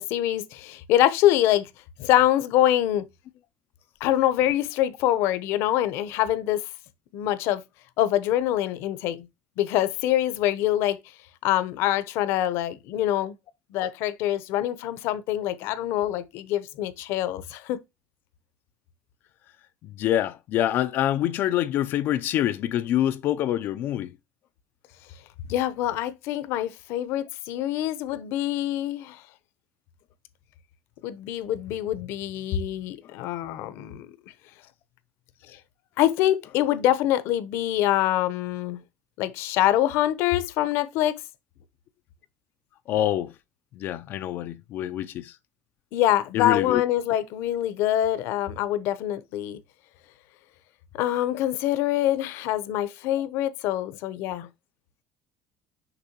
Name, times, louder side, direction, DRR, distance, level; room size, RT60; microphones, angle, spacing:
voice 1, 0.0-1.7 2.0-3.0 4.0-6.7 7.1-7.6 8.0-9.3 9.6-11.0 11.4-13.3 13.7-17.8 25.5-29.2 31.0-34.1 36.0-38.8 39.2-41.2 45.9-49.6 50.9-54.5, left 13 dB, 65° left, 0.8 m, -25 dB
voice 2, 20.0-24.1 42.9-43.3 43.8-45.3 46.3-46.8, left 12 dB, 50° left, 0.5 m, -25 dB
6.8 x 5.3 x 2.9 m
cardioid pair, 150°, 5 cm